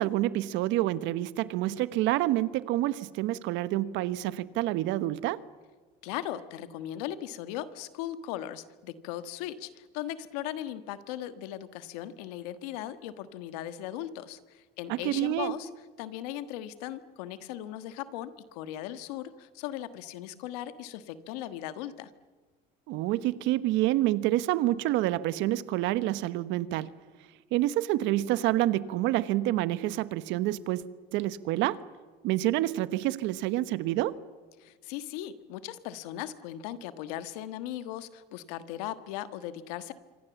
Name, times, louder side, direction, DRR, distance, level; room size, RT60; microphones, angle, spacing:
voice 1, 0.0-5.4 14.9-15.6 22.9-26.9 27.5-30.8 31.1-31.8 32.2-34.1, right 15 dB, 75° right, 1.2 m, -28 dB
voice 2, 6.0-15.7 16.0-22.1 34.6-39.9, left 12 dB, 90° left, 1.6 m, -38 dB
26.0 x 25.0 x 7.2 m
supercardioid pair, 105°, 19 cm